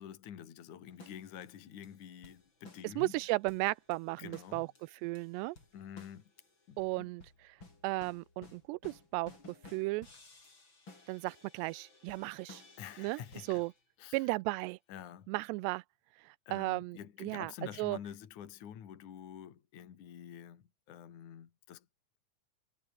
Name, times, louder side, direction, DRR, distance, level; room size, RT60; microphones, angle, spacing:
voice 1, 0.0-3.1 4.2-4.7 5.7-6.3 6.7-7.1 12.8-13.6 14.0-14.3 14.9-15.3 16.5-21.9, left 9 dB, 50° left, 3.4 m, -48 dB
sound 1, 0.9-13.8 14.6-14.7, left 3 dB, 30° left, 6.1 m, -57 dB
voice 2, 3.0-4.7 5.0-5.6 6.8-7.2 7.8-9.3 9.7-10.1 11.1-12.6 13.0-13.2 13.5-13.7 14.1-14.8 15.3-15.8 16.2-17.5 17.8-18.0, right 23 dB, 90° right, 2.8 m, -35 dB
omnidirectional pair, 4.8 m